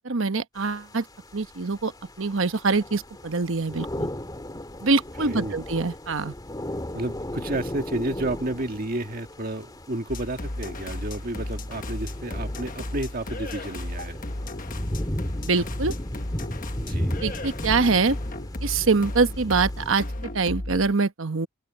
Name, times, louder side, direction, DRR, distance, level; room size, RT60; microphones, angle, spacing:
voice 1, 0.0-1.0 1.3-1.9 2.2-4.1 4.8-6.3 15.4-15.9 17.2-18.2 18.6-20.1 20.3-21.5, right 4 dB, 65° right, 1.1 m, -24 dB
sound 1, 0.6-19.9, left 1 dB, 20° left, 2.3 m, -36 dB
voice 2, 5.2-5.5 6.9-14.2 16.8-17.2, right 1 dB, 45° right, 1.8 m, -31 dB
sound 2, 10.1-20.9, left 1 dB, 40° left, 1.2 m, -34 dB
open air
head